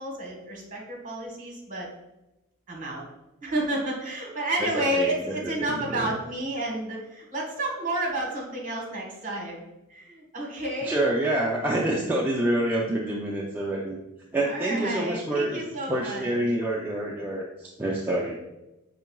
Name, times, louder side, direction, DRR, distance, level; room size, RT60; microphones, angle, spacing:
voice 1, 0.0-1.9 2.7-3.0 3.4-11.0 14.4-16.3, right 1 dB, 35° right, 0 dB, 1.2 m, -31 dB
voice 2, 4.6-5.3 5.6-6.1 10.9-14.0 14.3-18.4, right 1 dB, 10° right, -4 dB, 0.4 m, -27 dB
5.6 x 3.7 x 2.3 m, 0.95 s
head